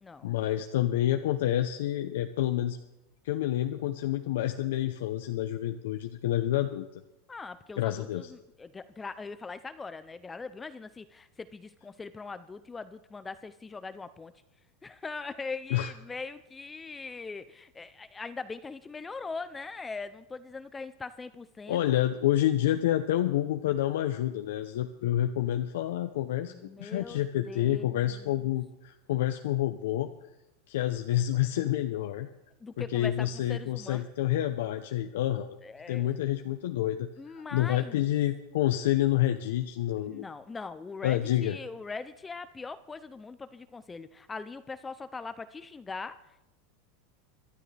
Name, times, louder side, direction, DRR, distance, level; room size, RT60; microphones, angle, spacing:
voice 1, 0.2-2.8 3.2-7.0 7.8-8.3 15.7-15.9 21.7-30.1 30.7-32.3 32.8-35.6 35.9-40.2 41.0-41.6, left 13 dB, 80° left, 6 dB, 0.7 m, -28 dB
voice 2, 7.3-14.3 14.8-22.0 26.5-28.5 32.6-34.1 35.6-36.2 37.2-38.1 40.0-46.2, left 4 dB, 15° left, 13 dB, 0.5 m, -41 dB
24.0 x 12.5 x 3.4 m, 0.93 s
supercardioid pair, 145°, 0 cm